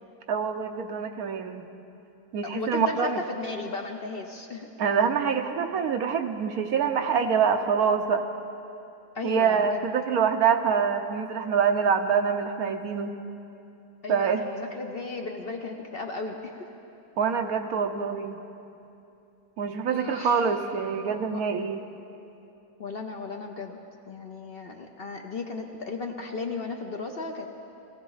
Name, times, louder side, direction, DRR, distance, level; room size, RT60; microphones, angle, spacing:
voice 1, 0.3-1.7 2.3-3.2 4.8-8.2 9.2-13.1 14.1-14.5 17.2-18.4 19.6-21.8, right 6 dB, 70° right, 6 dB, 1.2 m, -25 dB
voice 2, 2.4-4.7 9.1-9.9 14.0-16.7 19.9-20.4 21.3-21.4 22.8-23.8 24.1-27.5, left 3 dB, 50° left, 3 dB, 0.8 m, -35 dB
19.5 x 16.0 x 4.0 m, 2.8 s
omnidirectional pair, 1.6 m